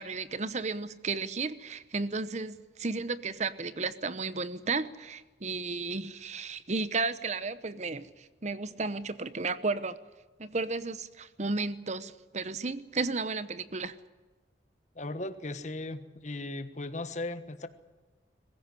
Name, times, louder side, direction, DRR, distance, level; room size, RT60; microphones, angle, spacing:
voice 1, 0.0-10.0 10.4-13.9, right 3 dB, 40° right, 15 dB, 0.9 m, -33 dB
voice 2, 14.9-17.7, left 2 dB, 40° left, 11 dB, 1.3 m, -37 dB
22.5 x 15.5 x 9.8 m, 1.3 s
head